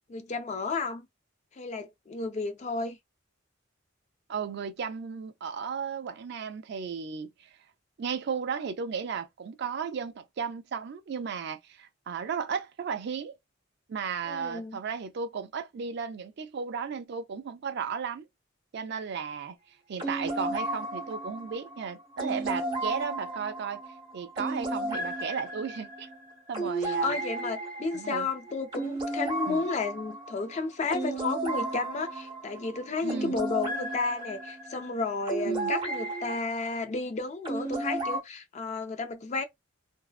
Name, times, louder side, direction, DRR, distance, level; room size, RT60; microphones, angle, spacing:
voice 1, 0.1-1.1 1.5-3.0 14.3-14.8 26.8-39.4, left 4 dB, 35° left, 0.4 m, -32 dB
voice 2, 4.3-7.5 8.0-13.3 13.9-18.2 18.7-19.6 19.9-23.8 24.1-26.1 26.5-27.1 27.9-28.3 29.5-29.6 33.0-33.4 35.4-35.7, right 6 dB, 55° right, 0.4 m, -34 dB
sound 1, 20.0-36.4 37.4-38.2, right 2 dB, 25° right, 1.1 m, -34 dB
2.6 x 2.0 x 2.4 m
head